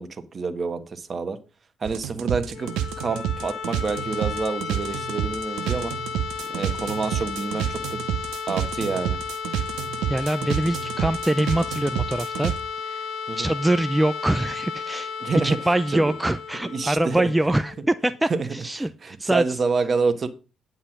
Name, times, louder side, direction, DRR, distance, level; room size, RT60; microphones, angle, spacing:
voice 1, 0.0-1.4 1.8-2.7 3.0-5.9 6.5-8.0 8.5-9.2 13.3-13.5 15.2-15.6 15.9-16.1 16.6-17.3 18.3-18.5 18.8-20.3, right 4 dB, 45° right, 1.4 m, -27 dB
sound 1, 1.9-12.6, right 11 dB, 75° right, 0.7 m, -29 dB
sound 2, 2.4-18.2, left 6 dB, 65° left, 0.7 m, -34 dB
voice 2, 10.1-12.5 12.9-13.1 13.4-15.1 15.4-19.4, right 1 dB, 10° right, 0.6 m, -24 dB
9.8 x 5.6 x 6.1 m
hypercardioid pair, 50°, 0 cm